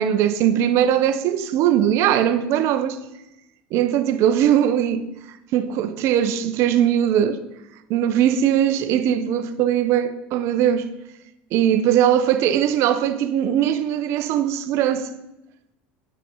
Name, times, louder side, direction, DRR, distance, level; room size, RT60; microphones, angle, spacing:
voice 1, 0.0-3.0 3.7-5.0 5.5-7.4 7.9-10.9 11.5-15.1, right 10 dB, 60° right, 0.8 m, -20 dB
9.9 x 6.9 x 4.6 m
hypercardioid pair, 90°, 5 cm